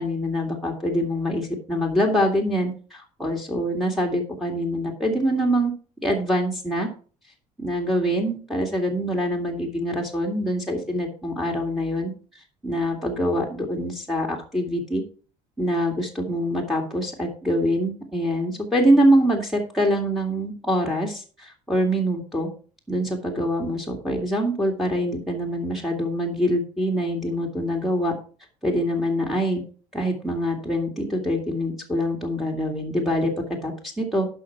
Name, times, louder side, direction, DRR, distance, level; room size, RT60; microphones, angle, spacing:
voice 1, 0.0-5.7 6.0-6.9 7.6-12.1 12.6-15.0 15.6-22.5 22.9-28.1 28.6-29.6 29.9-33.3 33.6-34.3, equal, ahead, 1 dB, 2.1 m, -24 dB
11.0 x 5.6 x 4.6 m, 0.38 s
cardioid pair, 100°, 15 cm